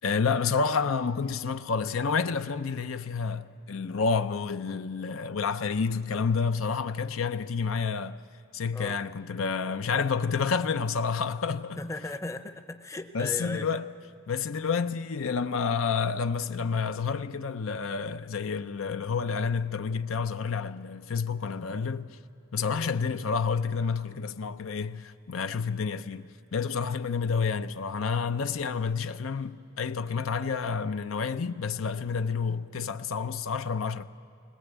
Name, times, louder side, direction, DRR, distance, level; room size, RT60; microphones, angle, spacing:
voice 1, 0.0-8.2 8.5-11.8 13.1-13.8 14.3-22.2 22.5-34.0, left 5 dB, 80° left, 0.6 m, -29 dB
voice 2, 8.7-9.1 11.8-13.7 22.7-22.9, left 2 dB, 15° left, 0.7 m, -37 dB
21.5 x 20.0 x 8.1 m
head